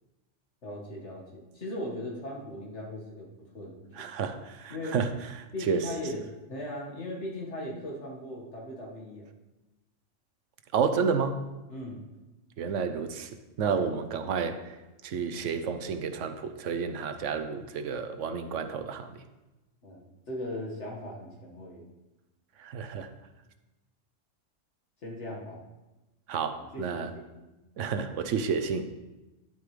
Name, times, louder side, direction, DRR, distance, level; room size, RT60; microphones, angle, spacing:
voice 1, 0.6-3.3 3.5-4.1 4.7-5.0 5.5-9.3 11.7-12.0 13.7-13.9 19.8-21.8 25.0-25.6 26.7-26.9 27.3-27.5, left 1 dB, 65° left, -2 dB, 2.1 m, -38 dB
voice 2, 3.9-5.1 5.4-5.9 10.7-11.4 12.6-13.3 13.6-14.7 15.0-19.2 22.6-23.1 26.3-27.1 27.8-28.9, right 6 dB, 75° right, 9 dB, 1.1 m, -30 dB
10.5 x 8.1 x 3.3 m, 1.0 s
omnidirectional pair, 1.3 m